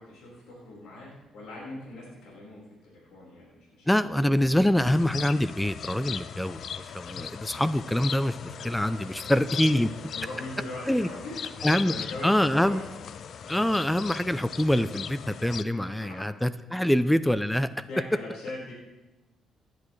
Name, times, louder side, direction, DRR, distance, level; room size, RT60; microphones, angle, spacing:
voice 1, 0.0-3.9 9.0-9.4 10.1-12.8 15.7-16.2 17.9-18.7, left 2 dB, 85° left, -6 dB, 4.6 m, -41 dB
voice 2, 3.9-9.9 10.9-11.1 11.6-11.9 12.2-12.8 13.5-17.7, left 1 dB, 5° left, 13 dB, 0.5 m, -25 dB
sound 1, 4.8-15.6, left 8 dB, 60° left, 0.5 m, -39 dB
18.0 x 10.5 x 3.3 m, 1.0 s
cardioid pair, 90°, 0 cm